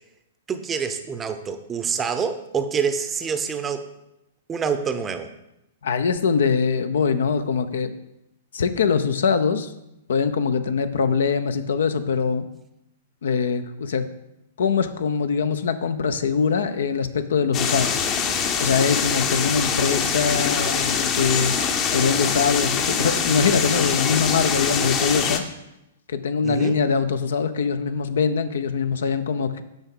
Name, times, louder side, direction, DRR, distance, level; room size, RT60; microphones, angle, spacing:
voice 1, 0.5-3.9 4.5-5.3 26.4-26.8, right 6 dB, 20° right, 9 dB, 0.7 m, -26 dB
voice 2, 5.8-7.9 8.5-9.7 10.1-12.4 13.2-14.0 14.6-18.1 18.6-21.5 21.9-25.4 26.1-29.6, left 5 dB, 65° left, 10 dB, 0.5 m, -23 dB
sound 1, 17.5-25.4, left 6 dB, 30° left, 0.8 m, -24 dB
8.9 x 6.0 x 3.8 m, 0.88 s
figure-of-eight pair, 110°, 0 cm